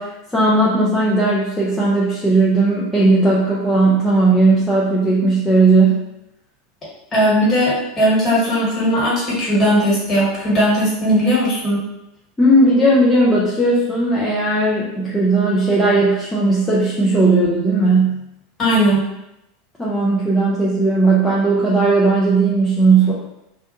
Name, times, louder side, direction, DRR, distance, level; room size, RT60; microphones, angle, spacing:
voice 1, 0.0-6.1 12.4-18.2 19.8-23.1, right 2 dB, 10° left, -7 dB, 0.6 m, -16 dB
voice 2, 7.1-11.8 18.6-19.0, equal, 30° left, -7 dB, 1.5 m, -17 dB
2.4 x 2.2 x 2.9 m, 0.87 s
figure-of-eight pair, 80°, 0 cm